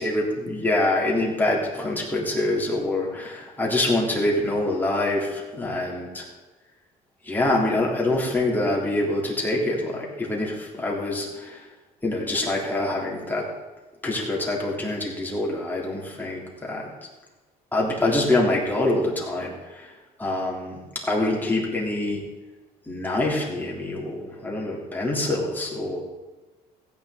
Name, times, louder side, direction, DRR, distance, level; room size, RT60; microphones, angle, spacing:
voice 1, 0.0-6.3 7.2-11.7 12.0-13.5 14.0-16.9 17.7-19.9 20.2-22.2 22.9-26.0, left 2 dB, 10° left, -3 dB, 3.5 m, -25 dB
16.0 x 9.3 x 4.0 m, 1.2 s
cardioid pair, 110°, 17 cm